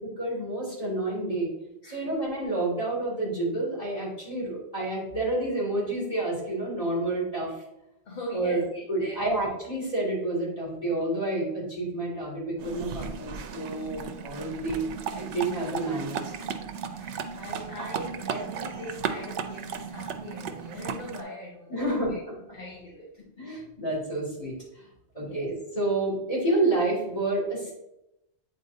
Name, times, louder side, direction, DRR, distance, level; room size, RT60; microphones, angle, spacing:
voice 1, 0.0-1.5 1.8-7.6 8.3-8.6 8.9-14.8 15.1-16.3 21.7-22.4 23.4-24.9 25.1-27.7, right 2 dB, 30° left, -5 dB, 2.6 m, -29 dB
voice 2, 1.8-2.2 8.1-8.6 9.0-9.4 16.4-21.8 22.1-22.2 22.5-23.1 23.5-23.6 25.2-25.5, left 1 dB, 55° left, -2 dB, 1.1 m, -41 dB
sound 1, 12.6-21.2, right 7 dB, 80° right, 0.9 m, -35 dB
8.2 x 4.2 x 2.7 m, 0.87 s
omnidirectional pair, 1.2 m